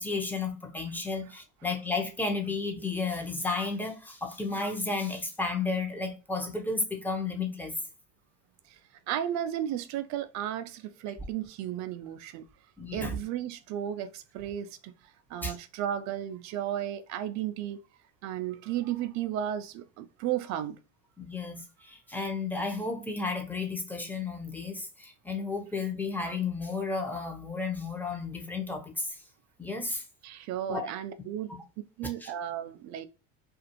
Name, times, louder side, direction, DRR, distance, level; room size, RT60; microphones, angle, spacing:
voice 1, 0.0-7.7 12.8-13.2 15.4-15.6 21.2-29.2 29.6-30.0 30.7-30.8 32.0-32.3, left 3 dB, 5° left, 0.8 m, -33 dB
voice 2, 9.1-12.5 12.9-17.8 18.2-20.8 30.2-31.5 32.0-33.1, right 11 dB, 50° right, 0.4 m, -34 dB
2.4 x 2.4 x 2.8 m
hypercardioid pair, 85°, 38 cm